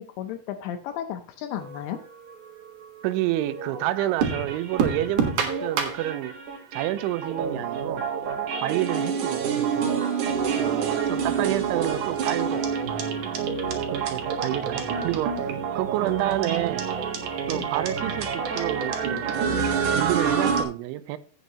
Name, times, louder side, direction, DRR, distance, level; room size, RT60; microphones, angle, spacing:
voice 1, 0.0-2.0 17.5-17.7, left 10 dB, 80° left, 2.7 m, -34 dB
sound 1, 1.5-2.8 3.4-20.6, right 6 dB, 65° right, 2.1 m, -27 dB
voice 2, 3.0-6.4 6.7-8.1 8.6-9.9 10.6-12.7 13.9-15.5 15.7-16.9 17.5-19.5 19.9-21.2, right 14 dB, 85° right, 3.0 m, -29 dB
16.5 x 6.4 x 2.9 m
omnidirectional pair, 5.6 m